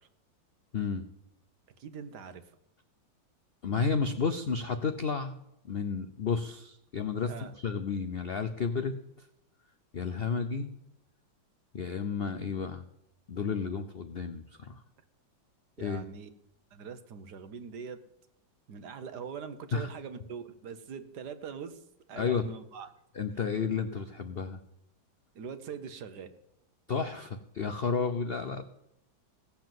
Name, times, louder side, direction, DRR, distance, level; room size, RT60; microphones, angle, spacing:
voice 1, 0.7-1.1 3.6-5.3 5.7-9.3 9.9-10.7 11.7-12.8 13.3-14.8 15.8-16.1 19.7-19.9 22.2-22.5 23.1-24.6 26.9-28.7, left 5 dB, 75° left, 8 dB, 0.5 m, -32 dB
voice 2, 1.8-2.4 7.3-7.5 15.8-16.3 16.7-18.0 18.7-21.8 22.1-22.9 25.3-26.3, right 6 dB, 65° right, 10 dB, 1.4 m, -42 dB
16.5 x 7.2 x 7.7 m, 0.83 s
omnidirectional pair, 2.0 m